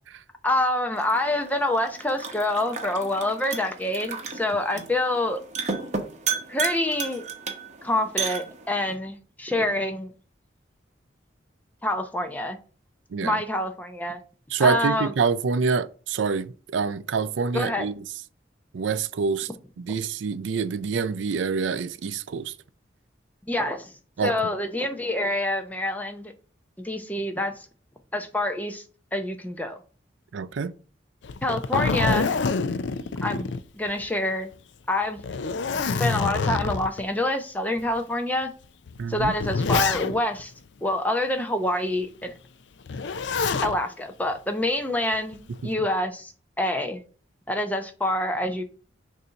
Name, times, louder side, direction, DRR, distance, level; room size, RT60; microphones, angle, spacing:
voice 1, 0.4-5.4 6.5-7.2 7.8-10.1 11.8-12.6 13.2-14.2 14.6-15.1 17.5-17.9 23.5-23.9 24.2-26.3 26.8-27.7 28.1-28.8 29.1-29.8 31.4-32.5 33.2-33.5 33.7-34.5 34.9-35.2 36.0-38.5 39.1-40.5 40.8-42.3 43.6-46.3 46.6-47.0 47.5-48.6, left 1 dB, 10° left, 0.6 m, -26 dB
sound 1, 0.9-8.9, right 5 dB, 40° right, 0.9 m, -34 dB
voice 2, 14.5-18.0 18.7-19.5 19.8-22.5 24.2-24.3 30.3-30.7 39.0-39.3 45.6-45.7, right 5 dB, 85° right, 0.4 m, -26 dB
Zipper (clothing), 31.2-34.2 34.5-34.6 35.2-37.0 37.8-37.9 38.9-40.4 42.9-43.8 45.1-45.6, left 4 dB, 70° left, 0.4 m, -26 dB
6.7 x 2.7 x 5.6 m
head